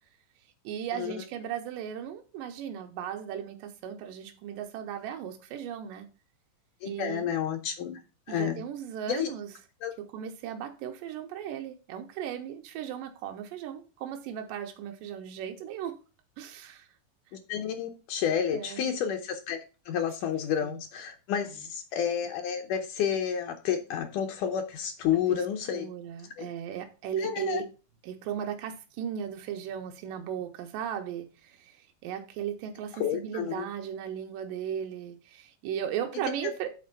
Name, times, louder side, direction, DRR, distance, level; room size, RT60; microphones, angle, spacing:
voice 1, 0.6-6.1 6.9-7.3 8.3-9.5 10.0-16.0 16.4-16.9 18.5-18.9 20.6-20.8 25.7-27.7 28.0-36.7, right 9 dB, 85° right, 2.5 m, -36 dB
voice 2, 6.8-8.0 8.3-8.6 9.1-9.3 9.8-9.9 17.3-25.9 26.4-26.5 27.2-27.6 32.9-33.7 36.4-36.5, left 8 dB, 75° left, 2.1 m, -30 dB
8.5 x 4.3 x 5.5 m
omnidirectional pair, 4.0 m